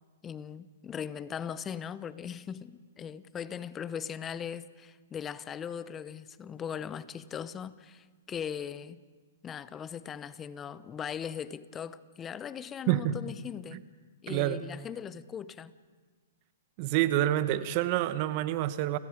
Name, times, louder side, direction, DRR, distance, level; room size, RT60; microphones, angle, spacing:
voice 1, 0.2-9.0 9.4-13.8 14.2-15.7, left 8 dB, 20° left, 0.7 m, -39 dB
voice 2, 12.9-13.2 13.7-13.8 14.3-14.6 16.8-19.0, right 13 dB, 40° right, 1.1 m, -27 dB
30.0 x 17.0 x 5.2 m
hypercardioid pair, 135°, 0 cm